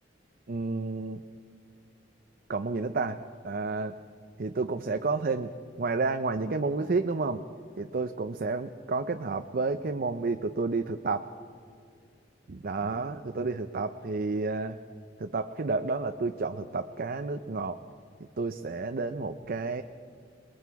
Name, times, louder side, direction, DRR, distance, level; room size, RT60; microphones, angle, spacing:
voice 1, 0.5-1.2 2.5-3.2 3.4-4.0 4.4-5.5 5.8-7.4 7.8-11.3 12.5-14.8 15.2-17.8 18.2-19.8, right 3 dB, 50° right, 8 dB, 0.6 m, -30 dB
26.0 x 21.0 x 4.7 m, 2.3 s
head